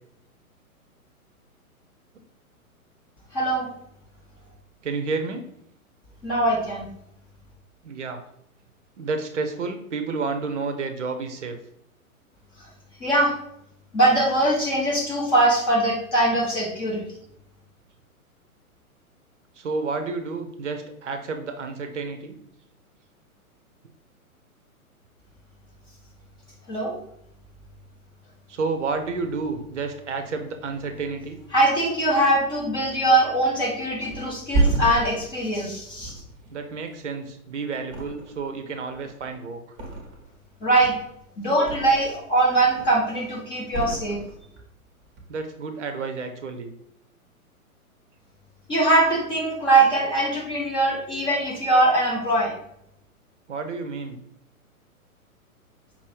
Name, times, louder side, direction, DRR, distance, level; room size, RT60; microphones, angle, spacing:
voice 1, 3.3-3.7 6.2-6.9 13.0-13.3 13.9-17.0 26.7-26.9 31.5-36.1 40.6-40.9 41.4-44.2 48.7-52.5, right 2 dB, 10° left, -4 dB, 0.7 m, -21 dB
voice 2, 4.8-5.4 7.8-8.2 9.0-11.6 19.6-22.4 28.5-31.4 36.5-39.6 45.3-46.7 53.5-54.2, right 4 dB, 55° right, 6 dB, 0.7 m, -30 dB
Thump thud, 34.1-37.4 37.8-38.6 38.9-40.4 40.7-42.2 42.6-43.1 43.7-44.7 45.0-45.2, right 3 dB, 25° right, 0.8 m, -29 dB
5.2 x 2.7 x 3.1 m, 0.75 s
figure-of-eight pair, 115°, 43 cm